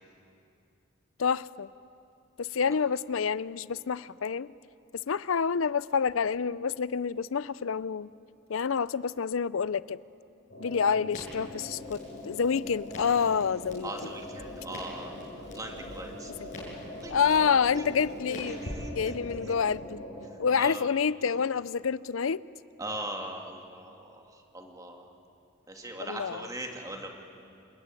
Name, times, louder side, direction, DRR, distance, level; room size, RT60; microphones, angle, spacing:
voice 1, 1.2-1.7 2.4-4.5 5.1-8.1 8.5-10.0 10.6-14.1 16.4-16.6 17.1-20.0 20.4-22.4 26.1-26.5, left 6 dB, 85° left, 19 dB, 0.5 m, -28 dB
sound 1, 10.5-20.3, left 1 dB, 60° left, 5.9 m, -42 dB
Crackle, 11.1-19.4, left 1 dB, 40° left, 7.9 m, -47 dB
voice 2, 13.8-16.3 17.0-17.3 17.8-19.6 20.5-20.8 22.8-25.1 25.7-27.1, right 1 dB, 15° right, 2 dB, 2.3 m, -40 dB
27.5 x 20.5 x 9.0 m, 2.6 s
head